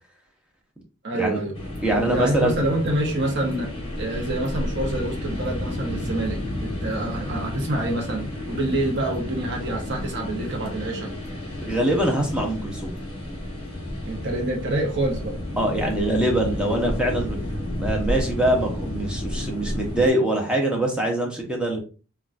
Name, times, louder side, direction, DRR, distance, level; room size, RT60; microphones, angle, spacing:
voice 1, 1.0-1.6 1.9-3.7 4.0-11.1 14.1-15.4, right 1 dB, 55° right, 1 dB, 0.7 m, -27 dB
sound 1, 1.5-20.1, left 1 dB, 25° left, 0.8 m, -31 dB
voice 2, 1.8-2.6 11.6-12.9 15.6-17.4 17.7-21.8, right 1 dB, 5° right, 0 dB, 0.6 m, -23 dB
3.7 x 2.2 x 2.4 m, 0.35 s
head